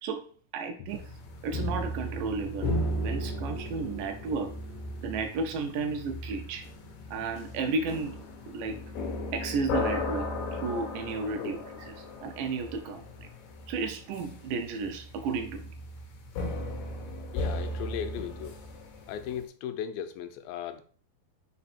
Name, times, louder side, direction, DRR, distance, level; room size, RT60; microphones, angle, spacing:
voice 1, 0.5-1.0 1.4-4.5 5.0-6.7 7.1-8.8 9.3-11.6 11.9-12.0 12.2-13.3 13.7-15.7, right 4 dB, 75° right, 2.2 m, -33 dB
sound 1, 0.9-19.4, left 1 dB, 70° left, 2.0 m, -36 dB
voice 2, 17.3-18.6 19.1-20.8, left 9 dB, 85° left, 2.4 m, -36 dB
4.9 x 4.4 x 4.3 m
omnidirectional pair, 4.2 m